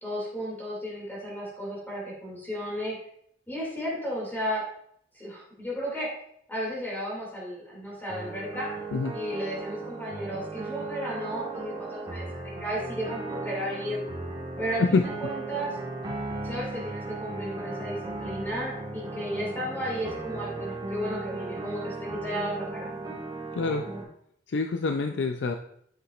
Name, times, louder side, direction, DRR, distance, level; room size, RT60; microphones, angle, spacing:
voice 1, 0.0-3.0 3.5-4.6 5.1-6.1 6.5-8.7 9.1-14.0 14.6-15.8 16.4-21.9 22.2-22.9, equal, 10° left, -5 dB, 2.4 m, -34 dB
sound 1, 8.1-24.0, right 2 dB, 25° right, 1.6 m, -36 dB
voice 2, 23.5-23.9 24.5-25.6, left 4 dB, 70° left, 6 dB, 0.4 m, -26 dB
8.4 x 7.1 x 2.4 m, 0.68 s
head